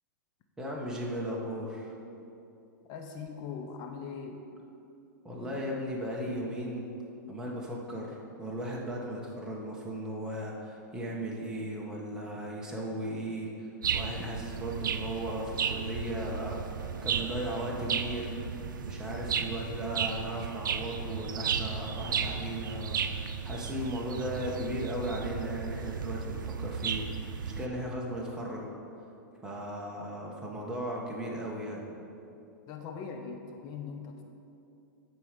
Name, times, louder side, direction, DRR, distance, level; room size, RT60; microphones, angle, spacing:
voice 1, 0.6-2.0 5.2-6.9 7.3-18.3 18.8-27.0 27.6-28.7 29.4-31.8, right 1 dB, 5° right, -3 dB, 1.2 m, -36 dB
voice 2, 2.8-4.4 11.9-12.0 32.3-34.2, left 5 dB, 40° left, 4 dB, 0.8 m, -41 dB
sound 1, 13.8-27.7, right 7 dB, 85° right, 0.5 m, -34 dB
11.0 x 4.7 x 5.2 m, 2.7 s
hypercardioid pair, 130°, 11 cm